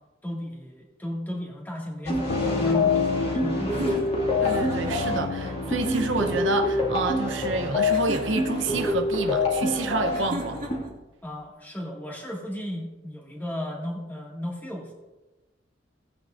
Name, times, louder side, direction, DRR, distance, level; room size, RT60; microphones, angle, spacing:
voice 1, 0.2-4.3 11.2-14.9, left 1 dB, 10° left, -2 dB, 1.9 m, -35 dB
sound 1, 2.0-10.8, left 2 dB, 35° left, 2.2 m, -26 dB
sound 2, 2.3-7.7, left 4 dB, 75° left, 0.4 m, -32 dB
sound 3, 3.7-5.0 5.8-6.4 7.9-8.7 10.1-10.9, right 1 dB, 45° right, 2.0 m, -35 dB
voice 2, 4.4-10.7, right 3 dB, 85° right, 5 dB, 0.8 m, -29 dB
16.5 x 8.7 x 2.5 m, 1.1 s
head